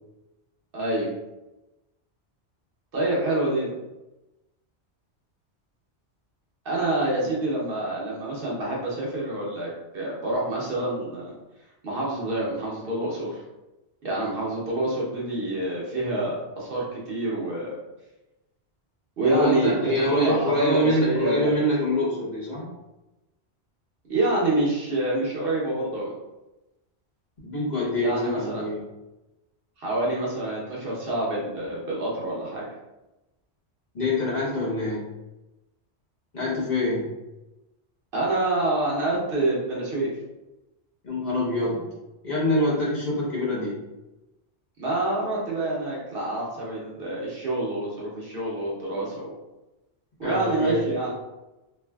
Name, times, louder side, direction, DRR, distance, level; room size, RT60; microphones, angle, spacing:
voice 1, 0.7-1.1 2.9-3.7 6.6-11.3 11.8-13.4 14.0-17.8 19.2-21.6 24.1-26.1 28.0-28.6 29.8-32.6 38.1-40.1 44.8-49.3 50.2-51.1, right 2 dB, 60° right, -5 dB, 0.9 m, -27 dB
voice 2, 19.2-22.7 27.4-28.8 33.9-35.1 36.3-37.1 41.0-41.9 42.2-43.8 50.2-50.8, left 1 dB, 45° left, -8 dB, 1.1 m, -25 dB
3.3 x 2.4 x 2.2 m, 1.0 s
omnidirectional pair, 1.1 m